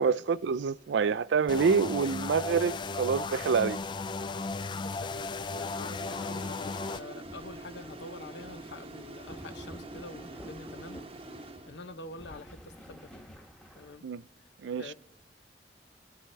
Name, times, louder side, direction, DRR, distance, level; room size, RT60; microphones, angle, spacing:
voice 1, 0.0-3.8 14.0-14.2 14.6-14.9, right 5 dB, 80° right, 0.4 m, -27 dB
sound 1, 1.5-7.0, left 3 dB, 25° left, 0.3 m, -35 dB
voice 2, 4.7-13.2 13.7-14.1 14.7-14.9, left 2 dB, 80° left, 0.9 m, -47 dB
sound 2, 5.5-12.2, right 2 dB, 30° right, 0.8 m, -46 dB
sound 3, 7.2-14.0, equal, 5° left, 1.1 m, -51 dB
25.5 x 9.0 x 3.3 m
head